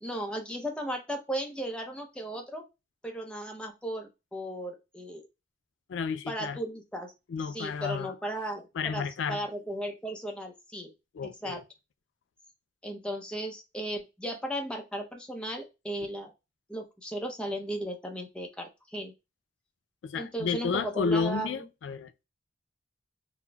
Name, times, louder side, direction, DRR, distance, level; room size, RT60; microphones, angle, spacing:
voice 1, 0.0-2.6 3.0-5.2 6.3-7.1 7.5-10.9 11.2-11.6 12.8-16.3 16.7-19.1 20.2-21.6, right 1 dB, 5° left, 0.6 m, -36 dB
voice 2, 5.9-6.6 7.3-8.1 8.8-9.4 11.1-11.6 20.0-22.2, left 5 dB, 90° left, 0.3 m, -31 dB
4.0 x 2.1 x 2.2 m
head